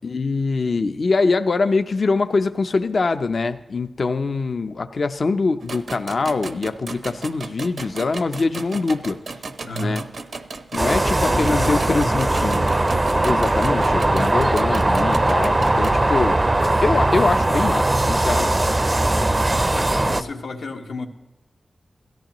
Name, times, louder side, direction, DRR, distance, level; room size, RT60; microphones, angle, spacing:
voice 1, 0.0-9.2 9.8-10.0 10.7-12.7 13.2-18.6, left 3 dB, 55° left, 9 dB, 0.6 m, -23 dB
sound 1, 5.6-15.9, right 3 dB, 65° right, 0.8 m, -35 dB
voice 2, 9.6-10.0 11.2-12.5 15.5-15.8 19.4-21.1, left 2 dB, 85° left, 1 dB, 1.5 m, -32 dB
sound 2, 10.8-20.2, right 2 dB, 25° right, 0.5 m, -19 dB
17.0 x 14.5 x 3.0 m, 0.99 s
wide cardioid pair, 120°, 0 cm